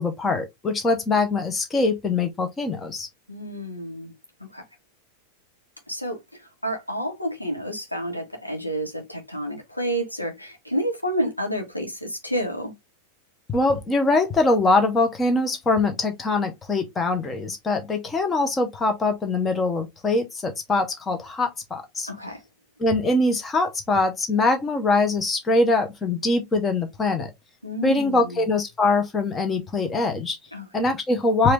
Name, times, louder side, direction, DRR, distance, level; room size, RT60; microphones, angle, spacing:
voice 1, 0.0-3.1 13.5-22.1 22.8-27.3 27.8-30.4 30.7-31.5, left 3 dB, 20° left, 1.3 m, -23 dB
voice 2, 3.3-4.1 4.5-4.6 5.9-12.7 22.1-22.4 27.6-28.5 30.5-30.7, equal, 90° left, 1.4 m, -30 dB
4.7 x 2.9 x 3.3 m
figure-of-eight pair, 90°, 0 cm